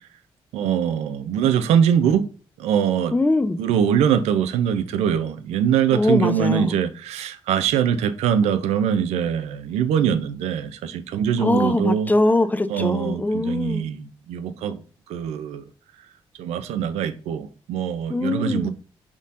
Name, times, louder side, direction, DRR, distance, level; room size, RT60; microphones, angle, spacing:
voice 1, 0.5-2.3 2.6-3.1 3.6-12.1 12.7-14.8 15.1-15.6 16.4-18.7, right 8 dB, 85° right, 0.4 m, -22 dB
voice 2, 3.1-3.6 5.9-6.7 11.4-13.8 18.1-18.7, left 2 dB, 15° left, 0.4 m, -22 dB
4.0 x 3.6 x 2.5 m
supercardioid pair, 55°, 11 cm